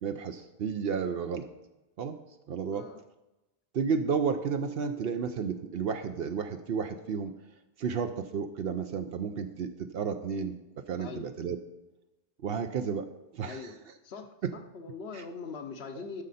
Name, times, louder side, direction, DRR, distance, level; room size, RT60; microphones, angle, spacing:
voice 1, 0.0-1.5 2.0-2.2 2.5-2.9 3.7-7.4 7.8-10.6 10.9-11.6 12.4-13.1 13.3-13.7 14.4-14.5 15.1-15.2, right 6 dB, 70° right, 7 dB, 0.8 m, -32 dB
voice 2, 13.5-13.8 14.0-16.2, left 4 dB, 80° left, 7 dB, 1.2 m, -42 dB
13.5 x 6.4 x 4.2 m, 1.0 s
omnidirectional pair, 1.0 m